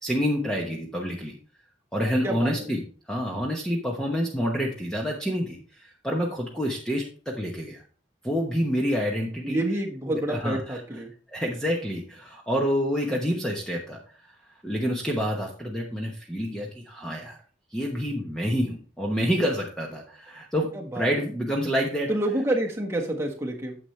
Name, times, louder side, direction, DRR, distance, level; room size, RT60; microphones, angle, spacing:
voice 1, 0.0-1.3 1.9-2.8 3.1-7.8 8.2-9.6 10.1-10.8 11.3-14.3 14.6-17.4 17.7-22.1, equal, 5° left, -1 dB, 1.0 m, -28 dB
voice 2, 2.2-2.7 9.4-11.1 20.7-21.0 22.1-23.8, right 1 dB, 15° right, 0 dB, 1.4 m, -28 dB
9.8 x 7.1 x 3.2 m, 0.40 s
head